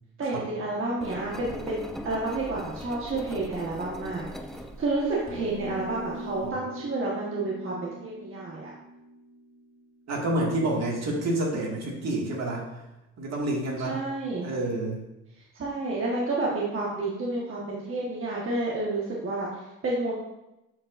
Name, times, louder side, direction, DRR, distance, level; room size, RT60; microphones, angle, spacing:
voice 1, 0.2-4.2 4.8-8.7 13.8-14.4 15.5-20.1, right 2 dB, 45° right, -4 dB, 1.4 m, -30 dB
Engine, 1.0-6.5, equal, ahead, 0.6 m, -41 dB
sound 1, 5.3-9.9, equal, 20° left, 2.6 m, -40 dB
voice 2, 10.1-12.7 13.2-14.0 14.4-15.0, right 1 dB, 60° right, -1 dB, 1.9 m, -28 dB
11.0 x 5.1 x 2.5 m, 0.94 s
cardioid pair, 90°, 30 cm